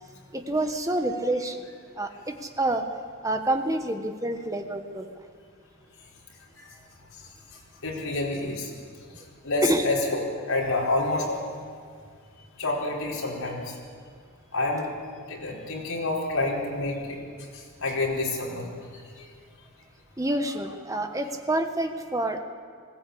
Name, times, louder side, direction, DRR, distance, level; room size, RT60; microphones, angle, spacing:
voice 1, 0.3-1.7 2.0-2.8 3.2-5.1 9.6-9.8 20.2-22.4, right 1 dB, 15° right, 6 dB, 1.2 m, -27 dB
voice 2, 7.1-8.7 9.1-11.5 12.6-13.8 14.5-14.9 15.3-18.7 18.9-19.3, left 2 dB, 75° left, -3 dB, 4.9 m, -29 dB
20.5 x 16.5 x 8.6 m, 2.1 s
head